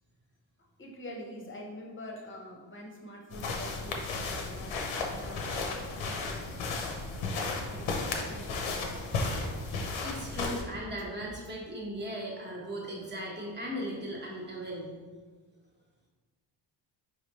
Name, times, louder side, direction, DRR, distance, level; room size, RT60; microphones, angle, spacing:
voice 1, 0.8-6.5 7.3-9.2, left 1 dB, 25° left, 0 dB, 0.8 m, -45 dB
sound 1, 3.3-10.6, left 3 dB, 85° left, 0.8 m, -34 dB
sound 2, 4.2-11.5, right 2 dB, 45° right, 0.6 m, -50 dB
voice 2, 9.6-14.9, equal, 20° right, -3 dB, 1.0 m, -38 dB
4.7 x 3.3 x 3.0 m, 1.5 s
cardioid pair, 115°, 47 cm